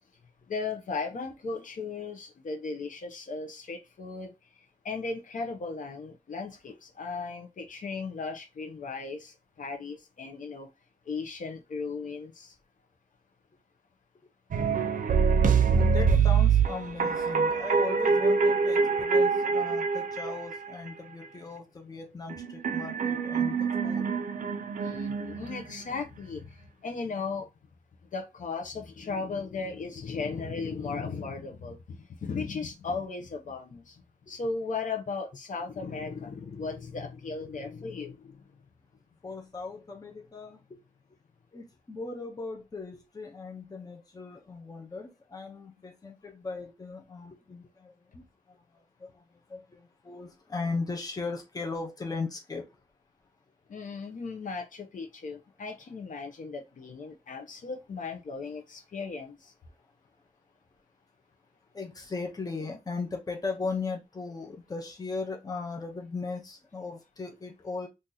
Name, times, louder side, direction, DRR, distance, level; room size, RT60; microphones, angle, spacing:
voice 1, 0.5-4.3 4.8-10.7 11.1-12.5 24.8-26.5 26.8-27.5 28.1-34.0 34.3-38.4 53.7-59.5, left 4 dB, 65° left, 0.7 m, -36 dB
sound 1, 14.5-20.9 22.3-26.0, right 5 dB, 70° right, 0.5 m, -25 dB
voice 2, 15.7-24.1 39.2-40.8 41.5-52.6 61.7-67.9, left 4 dB, 25° left, 0.7 m, -38 dB
2.8 x 2.5 x 3.8 m
wide cardioid pair, 160°, 14 cm